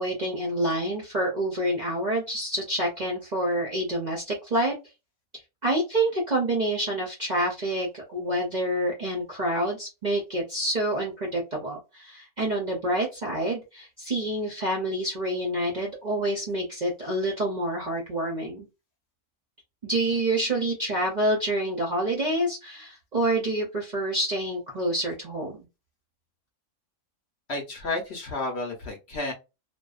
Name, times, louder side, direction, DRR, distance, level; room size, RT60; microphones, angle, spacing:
voice 1, 0.0-4.7 5.6-18.7 19.8-25.7, right 1 dB, 50° right, -2 dB, 0.5 m, -27 dB
voice 2, 27.5-29.3, left 2 dB, 55° left, 2 dB, 0.8 m, -31 dB
2.6 x 2.1 x 2.3 m, 0.26 s
omnidirectional pair, 1.5 m